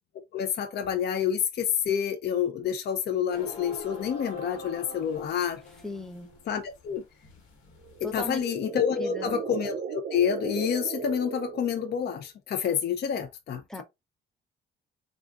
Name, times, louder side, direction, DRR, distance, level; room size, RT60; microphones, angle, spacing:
voice 1, 0.3-5.6 6.5-7.0 8.0-13.8, left 8 dB, 55° left, 0.5 m, -28 dB
sound 1, 3.3-8.4, left 3 dB, 90° left, 1.3 m, -44 dB
voice 2, 5.8-6.3 8.0-8.4 9.0-9.4 13.7-13.8, left 2 dB, ahead, 0.6 m, -37 dB
sound 2, 7.8-12.2, right 7 dB, 65° right, 0.5 m, -37 dB
3.7 x 2.4 x 2.4 m
cardioid pair, 90°, 20 cm